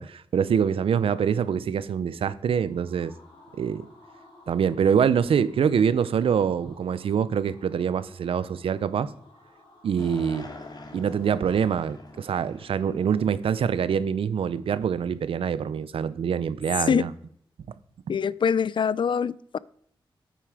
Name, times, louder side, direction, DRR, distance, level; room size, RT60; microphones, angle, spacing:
voice 1, 0.0-3.1 3.5-3.9 4.5-9.1 9.8-10.5 10.9-17.1, right 7 dB, 90° right, 0.6 m, -25 dB
sound 1, 2.4-13.3, left 2 dB, 80° left, 4.2 m, -56 dB
sound 2, 10.0-14.3, left 2 dB, 50° left, 2.0 m, -45 dB
voice 2, 18.1-19.6, left 7 dB, 65° left, 0.4 m, -24 dB
9.5 x 9.0 x 4.9 m
cardioid pair, 70°, 9 cm